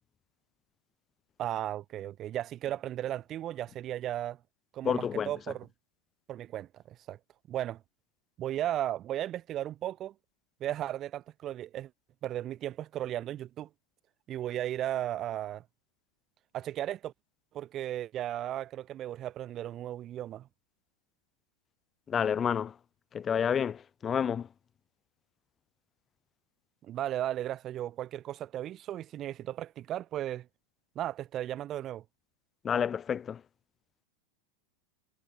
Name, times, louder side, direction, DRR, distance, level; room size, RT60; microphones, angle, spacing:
voice 1, 1.4-4.4 4.7-5.7 6.3-7.2 7.5-7.8 8.4-10.1 10.6-11.9 12.2-13.7 14.3-15.6 16.5-17.1 17.5-20.5 26.9-30.4 30.9-32.0, right 12 dB, 30° right, 1.3 m, -35 dB
voice 2, 4.8-5.3 22.1-22.7 23.1-23.8 24.0-24.5 32.6-33.4, left 8 dB, 20° left, 0.5 m, -29 dB
figure-of-eight pair, 90°, 0 cm